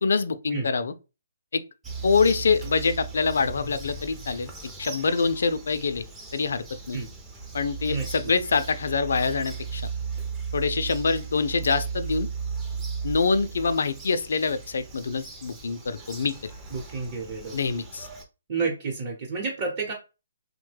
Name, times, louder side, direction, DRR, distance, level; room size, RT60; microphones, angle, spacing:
voice 1, 0.0-0.9 1.5-1.6 2.0-4.5 4.8-6.1 6.3-7.0 7.5-9.9 10.5-12.3 13.0-16.5 17.5-18.1, left 4 dB, 70° left, 0.4 m, -25 dB
Bird vocalization bird call bird song, 1.8-18.2, right 5 dB, 10° right, 0.5 m, -36 dB
voice 2, 16.7-17.6 18.5-19.9, right 4 dB, 35° right, 0.9 m, -30 dB
3.0 x 2.1 x 3.2 m
hypercardioid pair, 155°, 0 cm